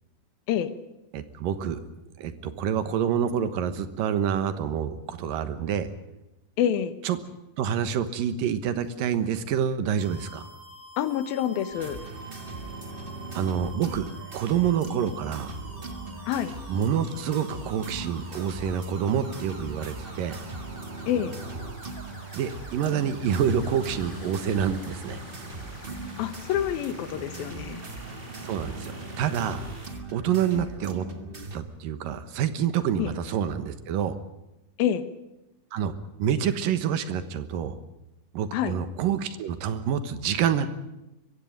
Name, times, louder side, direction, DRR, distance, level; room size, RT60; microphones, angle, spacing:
voice 1, 1.1-1.9 2.2-5.9 7.0-7.2 7.6-10.5 13.3-14.1 14.3-15.6 16.7-20.4 22.3-25.2 28.4-29.6 30.1-31.0 31.5-34.2 35.7-35.9 36.2-37.7 38.3-40.7, right 8 dB, 75° right, 12 dB, 2.9 m, -27 dB
voice 2, 6.6-6.9 11.0-12.0 16.3-16.5 21.1-21.4 26.2-27.8 33.0-33.1 34.8-35.0 38.5-38.8, left 10 dB, 85° left, 13 dB, 3.0 m, -27 dB
sound 1, 10.0-29.9, right 1 dB, 20° right, 5.1 m, -47 dB
sound 2, 11.7-31.6, right 2 dB, 55° right, 0.6 m, -40 dB
sound 3, 23.2-29.1, left 1 dB, 15° left, 5.9 m, -46 dB
23.5 x 15.5 x 9.0 m, 0.93 s
omnidirectional pair, 4.1 m